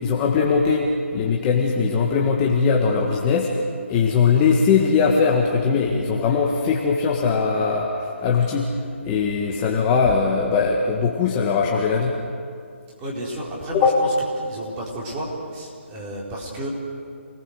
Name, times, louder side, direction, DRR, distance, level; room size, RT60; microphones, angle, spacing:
voice 1, 0.0-3.5 3.9-8.6 9.0-12.1 13.7-13.9, left 5 dB, 20° left, -1 dB, 1.6 m, -20 dB
voice 2, 13.0-14.1 14.4-16.7, right 1 dB, 20° right, -3 dB, 4.3 m, -32 dB
28.0 x 18.5 x 6.6 m, 2.4 s
hypercardioid pair, 160°, 7 cm